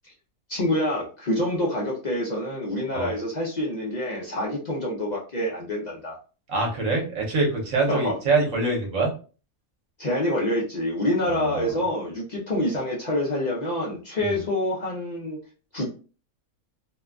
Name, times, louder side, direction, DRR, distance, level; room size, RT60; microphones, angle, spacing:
voice 1, 0.5-6.2 7.9-8.1 10.0-15.4 15.7-15.9, left 1 dB, 55° left, -4 dB, 0.5 m, -27 dB
voice 2, 6.5-9.1 11.3-11.7 14.2-14.3, right 3 dB, 65° right, 0 dB, 1.2 m, -24 dB
2.8 x 2.4 x 2.3 m, 0.36 s
omnidirectional pair, 1.5 m